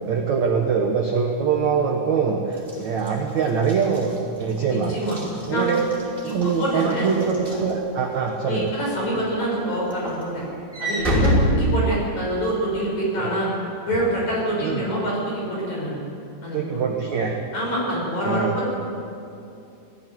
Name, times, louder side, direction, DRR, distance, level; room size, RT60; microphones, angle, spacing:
voice 1, 0.1-5.0 5.5-5.9 6.2-8.7 11.6-11.7 13.2-13.3 14.6-14.9 16.5-17.4 18.2-18.6, right 6 dB, 65° right, 2 dB, 1.8 m, -23 dB
Walk footsteps / Slam, 2.6-8.3 8.8-9.1 9.4-12.4, equal, 10° right, 5.0 m, -27 dB
voice 2, 4.7-5.2 5.5-5.7 6.3-7.0 8.5-10.4 10.8-13.5 13.8-16.0 16.4-16.8 17.5-18.7, right 1 dB, 40° left, -4 dB, 7.8 m, -26 dB
19.0 x 17.0 x 9.8 m, 2.7 s
omnidirectional pair, 5.3 m